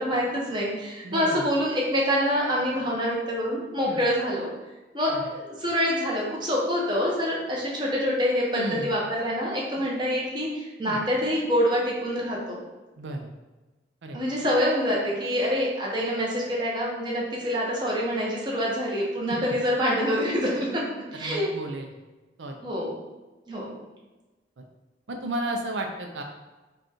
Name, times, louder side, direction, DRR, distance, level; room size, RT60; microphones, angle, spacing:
voice 1, 0.0-4.5 4.9-12.6 14.1-20.8 21.1-21.5 22.6-22.9 23.5-23.7, equal, 25° right, -4 dB, 1.0 m, -26 dB
voice 2, 1.0-1.5 3.9-4.0 5.1-5.2 8.5-8.9 10.8-11.0 13.0-13.3 14.0-14.2 19.3-19.4 21.1-21.9 22.4-22.6 24.6-24.7 25.1-26.2, right 1 dB, 85° right, 3 dB, 0.5 m, -33 dB
5.1 x 2.4 x 4.3 m, 1.2 s
head